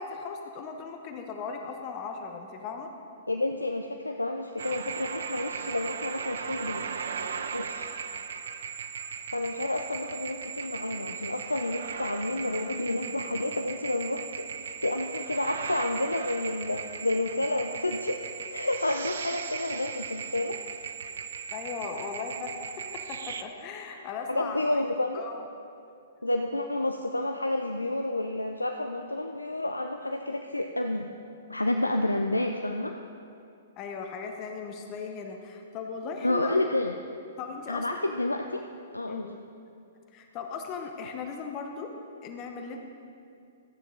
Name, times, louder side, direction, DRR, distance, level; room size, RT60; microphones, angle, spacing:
voice 1, 0.0-2.9 21.5-22.6 23.1-24.6 25.1-25.5 33.8-36.6 37.4-38.1 39.1-39.4 40.1-41.9 42.2-42.8, left 5 dB, 35° left, 3 dB, 1.0 m, -37 dB
voice 2, 3.3-6.9 7.5-7.9 9.3-18.2 18.5-20.6 24.3-25.2 26.2-31.1 31.5-32.9 36.2-36.9 37.7-38.6 38.9-39.3, left 2 dB, 90° left, 4 dB, 0.5 m, -30 dB
sound 1, 4.6-23.4, right 6 dB, 65° right, 0.5 m, -37 dB
13.0 x 9.1 x 3.9 m, 2.5 s
figure-of-eight pair, 115°, 0 cm